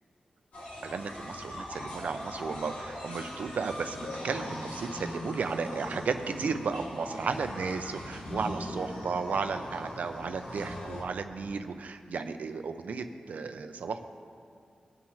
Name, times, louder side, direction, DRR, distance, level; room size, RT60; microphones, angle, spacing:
sound 1, 0.5-11.0, left 1 dB, 85° left, 2.2 m, -40 dB
voice 1, 0.8-14.1, right 5 dB, 80° right, 8 dB, 0.6 m, -34 dB
20.0 x 7.3 x 3.1 m, 2.3 s
wide cardioid pair, 145°, 3 cm